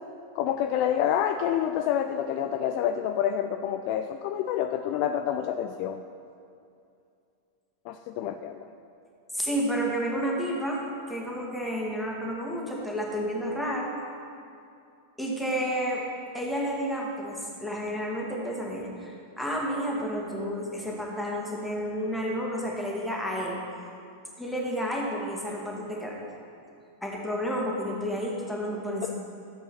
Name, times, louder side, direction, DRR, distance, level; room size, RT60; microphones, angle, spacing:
voice 1, 0.3-6.0 7.9-8.7 29.1-29.2, left 9 dB, 45° left, 7 dB, 0.3 m, -28 dB
voice 2, 9.3-10.8 11.1-13.9 15.2-16.0 16.3-23.6 24.4-26.1 27.0-29.1, equal, 5° left, -2 dB, 1.8 m, -31 dB
12.5 x 7.8 x 4.3 m, 2.5 s
figure-of-eight pair, 90°, 0 cm